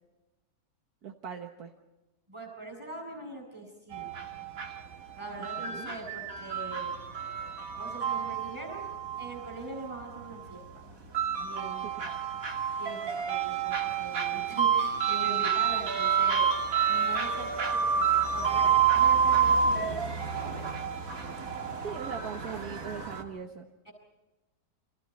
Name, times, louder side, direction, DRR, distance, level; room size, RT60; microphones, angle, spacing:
voice 1, 1.0-1.7 5.6-5.9 11.8-12.4 21.8-23.7, right 6 dB, 80° right, 3 dB, 1.9 m, -41 dB
voice 2, 2.3-4.1 5.1-6.9 7.7-8.9 9.2-10.8 11.4-11.9 12.8-16.5 16.9-18.1 18.3-20.1 20.3-20.7 22.5-22.9 23.9-24.0, right 2 dB, 20° right, 0 dB, 7.4 m, -42 dB
sound 1, 3.9-23.2, right 7 dB, 65° right, 2.6 m, -29 dB
29.5 x 27.0 x 4.3 m, 1.1 s
omnidirectional pair, 1.6 m